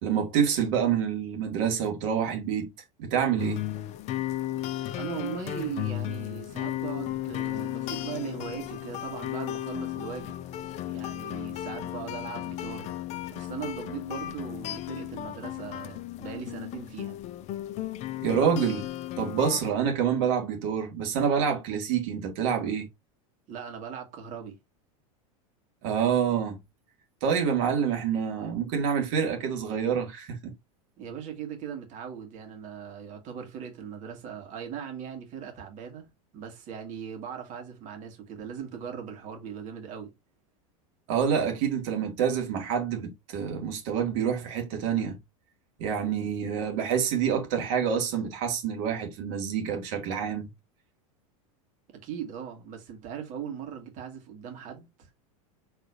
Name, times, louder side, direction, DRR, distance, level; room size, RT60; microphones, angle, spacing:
voice 1, 0.0-2.7 3.0-3.6 18.2-18.9 19.2-22.9 25.8-26.6 27.2-30.5 41.1-45.2 45.8-50.5, right 7 dB, 60° right, 2.0 m, -27 dB
sound 1, 3.4-19.7, left 13 dB, 40° left, 0.5 m, -35 dB
voice 2, 4.9-10.4 10.8-13.0 13.3-17.2 23.5-24.6 31.0-40.1 51.9-55.2, right 8 dB, 45° right, 2.1 m, -39 dB
4.7 x 3.6 x 2.7 m
supercardioid pair, 120°, 18 cm